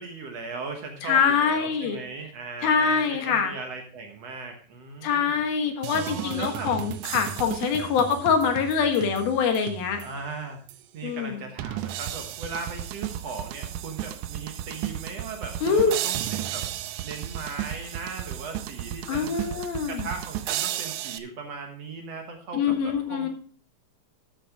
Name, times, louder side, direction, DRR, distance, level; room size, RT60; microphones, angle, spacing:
voice 1, 0.0-5.4 5.9-6.7 10.0-10.7 10.9-16.7 17.0-19.5 19.9-23.3, right 4 dB, 60° right, 3 dB, 1.9 m, -38 dB
voice 2, 1.0-2.0 2.6-3.5 5.0-10.0 11.0-11.4 15.6-15.9 19.1-20.1 22.5-23.3, left 6 dB, 90° left, 5 dB, 3.4 m, -24 dB
sound 1, 5.8-10.3 10.7-10.8 11.6-21.2, right 12 dB, 85° right, 1.8 m, -34 dB
12.5 x 8.6 x 3.5 m, 0.41 s
omnidirectional pair, 4.1 m